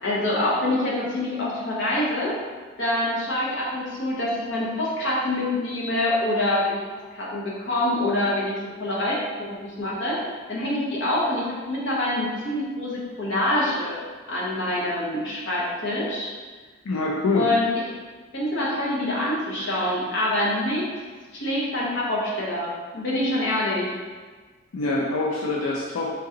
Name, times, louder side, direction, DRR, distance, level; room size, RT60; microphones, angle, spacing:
voice 1, 0.0-2.4 2.8-6.8 7.1-10.2 10.5-14.0 14.3-16.3 17.3-17.7 18.3-20.9 21.3-23.9, left 1 dB, 60° left, -5 dB, 1.1 m, -25 dB
voice 2, 16.8-17.5 24.7-26.1, left 2 dB, 90° left, -3 dB, 0.5 m, -25 dB
3.8 x 2.8 x 3.8 m, 1.4 s
head